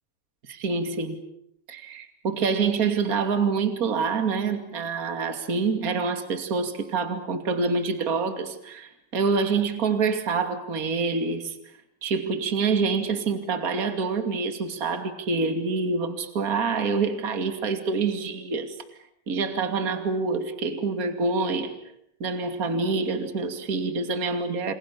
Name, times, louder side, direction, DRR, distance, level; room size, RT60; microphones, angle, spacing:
voice 1, 0.4-1.2 1.7-11.5 12.0-18.8 19.3-21.8 22.2-24.7, right 4 dB, 30° right, 7 dB, 1.7 m, -26 dB
29.0 x 27.5 x 7.0 m, 0.74 s
omnidirectional pair, 5.7 m